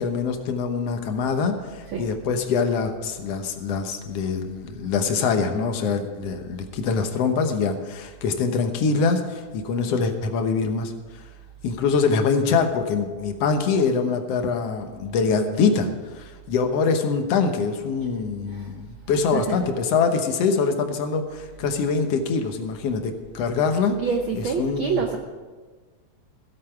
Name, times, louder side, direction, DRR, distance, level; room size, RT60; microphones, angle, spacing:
voice 1, 0.0-10.9 11.6-15.9 16.2-23.9 24.3-25.0, left 5 dB, 65° left, 6 dB, 2.0 m, -24 dB
voice 2, 19.1-19.6 23.9-25.2, right 6 dB, 75° right, 4 dB, 1.1 m, -27 dB
15.5 x 8.1 x 5.9 m, 1.4 s
omnidirectional pair, 3.3 m